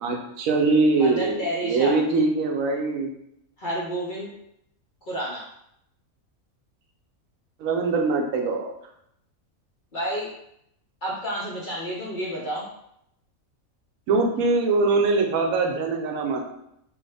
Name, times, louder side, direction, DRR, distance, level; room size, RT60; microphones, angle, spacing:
voice 1, 0.0-3.1 7.6-8.7 14.1-16.4, right 3 dB, 80° right, 2 dB, 1.0 m, -22 dB
voice 2, 1.0-2.0 3.6-4.3 5.1-5.5 9.9-10.3 11.0-12.7, equal, 55° left, -4 dB, 0.6 m, -30 dB
3.2 x 2.3 x 3.3 m, 0.75 s
omnidirectional pair, 1.4 m